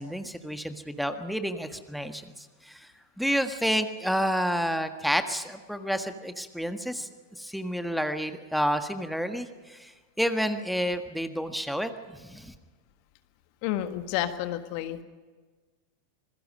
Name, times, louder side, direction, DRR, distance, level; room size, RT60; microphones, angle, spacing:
voice 1, 0.0-2.8 3.2-7.1 7.4-9.9 10.2-11.9 12.3-12.5, equal, ahead, 8 dB, 1.6 m, -29 dB
voice 2, 13.6-15.0, left 12 dB, 45° left, 9 dB, 1.5 m, -30 dB
26.5 x 22.0 x 5.3 m, 1.4 s
figure-of-eight pair, 90°, 0 cm